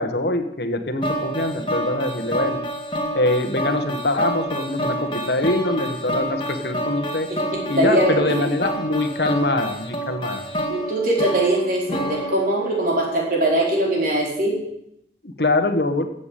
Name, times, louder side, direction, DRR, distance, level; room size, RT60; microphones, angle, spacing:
voice 1, 0.0-2.6 3.1-7.3 7.7-10.4 15.2-16.1, left 2 dB, 70° left, 7 dB, 1.6 m, -23 dB
sound 1, 1.0-13.2, right 1 dB, 30° left, 2.1 m, -28 dB
voice 2, 7.5-8.4 10.7-14.6, right 1 dB, 50° right, -1 dB, 4.9 m, -21 dB
15.0 x 8.5 x 8.5 m, 0.78 s
head